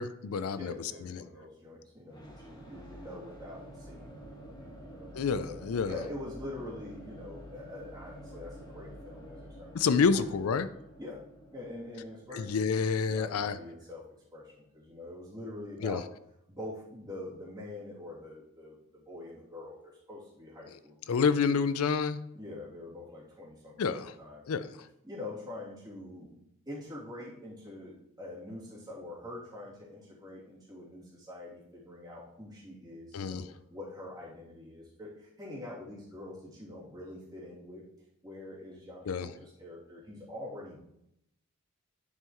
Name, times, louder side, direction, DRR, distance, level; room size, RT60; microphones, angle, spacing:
voice 1, 0.0-1.2 5.1-5.9 9.7-10.7 12.3-13.6 15.8-16.0 21.1-22.2 23.8-24.1 24.5-24.7 33.1-33.5 39.1-39.3, left 5 dB, 90° left, 13 dB, 0.4 m, -28 dB
voice 2, 0.5-5.6 5.8-10.4 11.0-11.2 11.5-14.0 14.3-16.1 16.5-21.2 22.3-24.6 25.0-26.3 26.6-37.8 38.2-40.8, left 1 dB, 20° right, -8 dB, 2.8 m, -45 dB
sound 1, 2.1-13.9, equal, 20° left, 1.3 m, -49 dB
10.5 x 5.6 x 3.1 m, 0.80 s
head